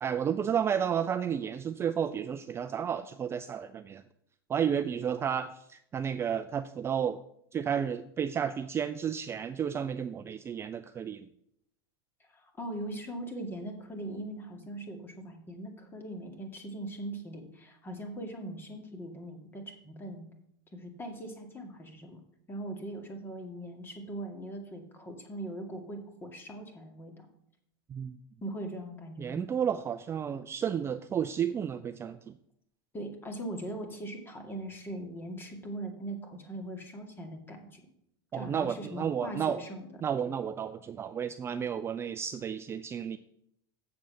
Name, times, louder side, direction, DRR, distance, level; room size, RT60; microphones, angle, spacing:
voice 1, 0.0-4.0 4.5-7.2 7.5-11.3 27.9-28.2 29.2-32.3 38.3-39.6 40.0-43.2, right 8 dB, 20° right, 10 dB, 0.4 m, -32 dB
voice 2, 12.3-20.3 20.7-22.2 22.5-27.3 28.4-29.4 32.9-37.8 38.3-39.9, right 1 dB, 20° left, 4 dB, 2.2 m, -40 dB
7.7 x 7.0 x 6.2 m, 0.74 s
supercardioid pair, 120°, 12 cm